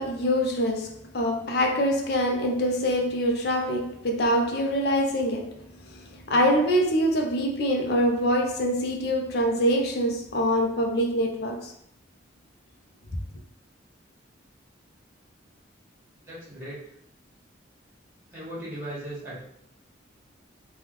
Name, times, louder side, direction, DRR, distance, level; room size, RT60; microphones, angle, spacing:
voice 1, 0.0-5.6 5.8-11.7, equal, 55° left, 0.5 m, -25 dB
voice 2, 16.2-16.8 18.3-19.4, right 1 dB, 15° right, 1.3 m, -37 dB
3.4 x 2.2 x 2.9 m
head